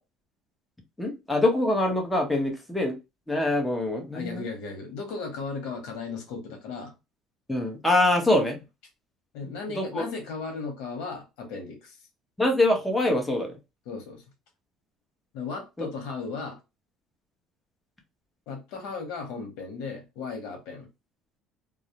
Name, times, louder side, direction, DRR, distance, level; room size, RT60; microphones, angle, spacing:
voice 1, 1.0-2.9 3.3-4.5 7.5-8.6 9.4-10.1 12.4-13.6 15.8-15.9, left 1 dB, 5° left, 0.8 m, -24 dB
voice 2, 4.1-6.9 9.3-12.0 13.9-14.2 15.3-16.6 18.5-20.9, left 4 dB, 80° left, 0.9 m, -36 dB
2.3 x 2.0 x 2.8 m
cardioid pair, 115°, 0 cm